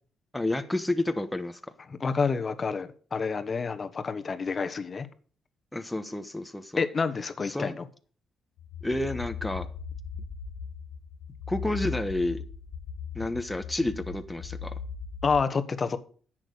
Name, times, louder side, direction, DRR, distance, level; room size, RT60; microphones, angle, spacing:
voice 1, 0.3-1.6 5.7-6.8 7.5-7.7 8.8-9.7 11.5-12.4 13.1-14.7, left 1 dB, 10° left, 1.2 m, -30 dB
voice 2, 1.9-5.1 6.8-7.9 15.2-16.0, left 5 dB, 35° left, 1.3 m, -28 dB
sound 1, 8.6-15.4, left 6 dB, 80° left, 1.0 m, -38 dB
10.5 x 7.7 x 6.6 m
cardioid pair, 90°, 0 cm